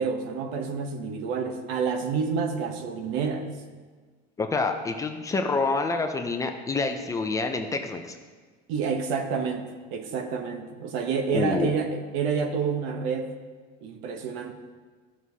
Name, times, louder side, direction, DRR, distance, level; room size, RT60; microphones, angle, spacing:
voice 1, 0.0-3.5 8.7-13.3 13.8-14.5, right 5 dB, 70° right, 6 dB, 0.9 m, -28 dB
voice 2, 4.4-8.2 11.3-11.7, left 3 dB, 15° left, 5 dB, 0.5 m, -27 dB
13.5 x 6.2 x 2.8 m, 1.5 s
cardioid pair, 155°, 21 cm